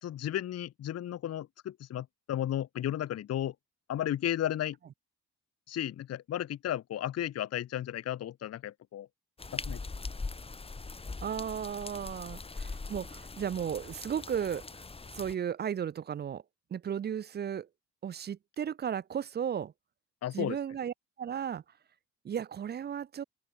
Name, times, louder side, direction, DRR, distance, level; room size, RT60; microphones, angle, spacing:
voice 1, 0.0-3.5 3.9-4.8 5.7-9.1 9.5-9.8 20.2-20.6, left 11 dB, 55° left, 0.8 m, -34 dB
sound 1, 9.4-15.4, left 3 dB, 20° left, 1.2 m, -41 dB
voice 2, 11.2-14.8 15.1-16.4 16.7-17.7 18.0-19.7 20.3-21.6 22.2-23.2, right 8 dB, 35° right, 0.5 m, -35 dB
open air
cardioid pair, 90°, 30 cm